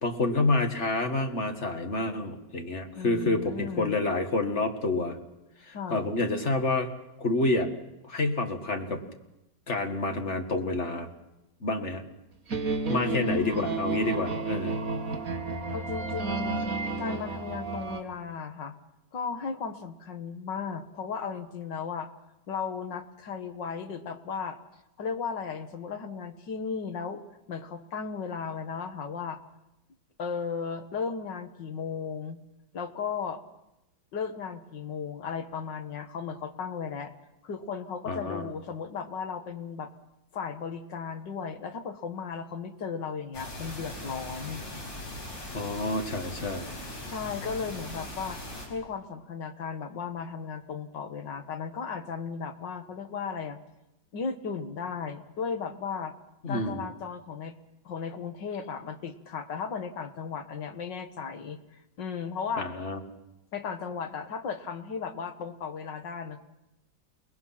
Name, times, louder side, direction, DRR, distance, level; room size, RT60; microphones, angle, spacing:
voice 1, 0.0-5.2 5.7-6.9 7.2-7.7 8.1-9.0 9.7-11.1 11.6-12.0 12.9-14.7 38.1-38.4 45.5-46.7 56.4-56.8 62.6-63.0, left 2 dB, 40° left, 5 dB, 2.2 m, -28 dB
voice 2, 3.0-4.0 5.7-6.1 12.9-13.7 15.7-16.7 17.0-18.8 19.1-22.1 22.5-24.6 25.0-27.2 27.5-29.4 30.2-32.4 32.7-33.4 34.1-37.1 37.4-39.9 40.3-44.7 47.1-48.4 48.7-53.6 54.1-56.2 56.5-57.6 57.8-62.7 63.5-66.4, left 5 dB, 70° left, 8 dB, 2.1 m, -35 dB
sound 1, 12.5-18.0, right 3 dB, 50° right, 2.2 m, -31 dB
sound 2, 43.3-48.7, left 1 dB, 90° left, 5.9 m, -40 dB
29.5 x 20.0 x 5.9 m, 0.91 s
omnidirectional pair, 2.0 m